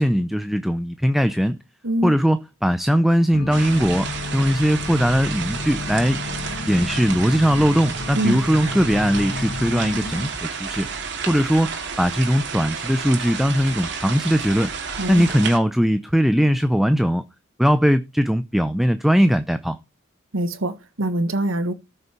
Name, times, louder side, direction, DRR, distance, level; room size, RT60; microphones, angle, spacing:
voice 1, 0.0-1.6 2.0-6.2 6.7-10.9 11.3-14.7 15.1-17.2 17.6-19.8, equal, ahead, 0.5 m, -20 dB
sound 1, 3.3-10.3, left 2 dB, 50° left, 1.8 m, -32 dB
sound 2, 3.5-15.6, right 5 dB, 60° right, 2.9 m, -31 dB
voice 2, 15.0-15.3 20.3-21.7, right 1 dB, 80° right, 1.4 m, -24 dB
14.0 x 6.7 x 4.3 m
head